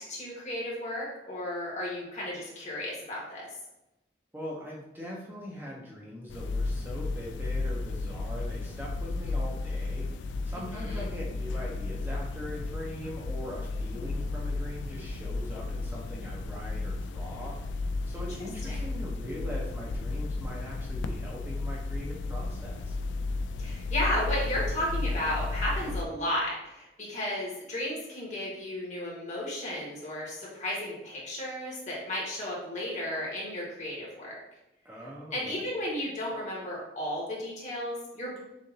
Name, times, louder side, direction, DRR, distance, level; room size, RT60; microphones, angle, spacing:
voice 1, 0.0-3.5 10.7-11.0 14.0-14.1 18.2-18.3 18.6-18.8 23.6-34.4 35.3-38.4, left 1 dB, 40° left, -4 dB, 1.5 m, -34 dB
voice 2, 4.3-10.1 10.4-17.6 18.1-22.9 34.8-35.6, equal, 10° right, -5 dB, 0.7 m, -41 dB
sound 1, 6.3-26.1, left 3 dB, 80° left, 0.3 m, -33 dB
6.5 x 2.6 x 2.8 m, 0.92 s
head